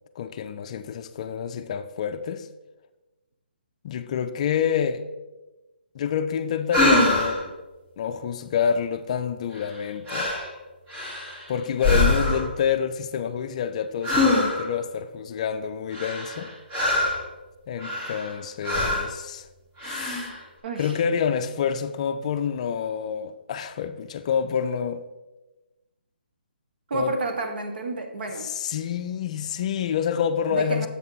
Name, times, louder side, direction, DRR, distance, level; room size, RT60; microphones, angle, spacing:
voice 1, 0.2-2.5 3.8-5.1 5.9-7.5 8.0-10.3 11.5-16.5 17.7-19.5 19.8-20.3 20.8-25.0 26.9-27.1 28.4-30.9, left 7 dB, 40° left, 0.4 m, -27 dB
sound 1, 6.7-7.5 9.5-9.8 10.1-10.5 10.9-11.4 11.8-12.6 14.0-14.8 15.9-17.3 17.8-18.3 18.6-19.1 19.8-20.4, left 2 dB, 25° right, 1.9 m, -24 dB
voice 2, 26.9-28.5 30.5-30.9, right 3 dB, 65° right, 1.2 m, -30 dB
7.5 x 5.4 x 4.1 m
hypercardioid pair, 150°, 6 cm